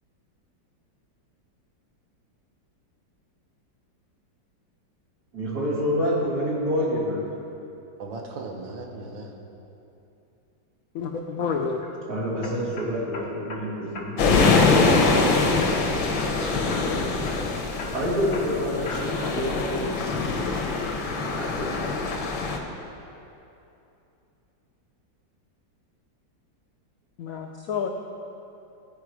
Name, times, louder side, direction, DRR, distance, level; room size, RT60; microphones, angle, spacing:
voice 1, 5.3-7.2 12.1-14.8 17.9-19.9 21.1-21.8, equal, 55° right, -7 dB, 2.8 m, -28 dB
voice 2, 8.0-9.4 14.7-16.5, right 3 dB, 90° right, 1 dB, 1.7 m, -37 dB
voice 3, 10.9-11.8 27.2-27.9, left 6 dB, 75° left, 2 dB, 0.8 m, -29 dB
sound 1, 11.5-11.9 12.4-13.6 13.9-14.6 14.9-15.3 15.6-16.4 16.7-16.9 17.3-19.3 19.7-20.2, left 3 dB, 60° left, 1.5 m, -39 dB
sound 2, 14.2-22.6, left 3 dB, 90° left, 1.7 m, -23 dB
15.0 x 5.0 x 4.8 m, 2.8 s
omnidirectional pair, 2.0 m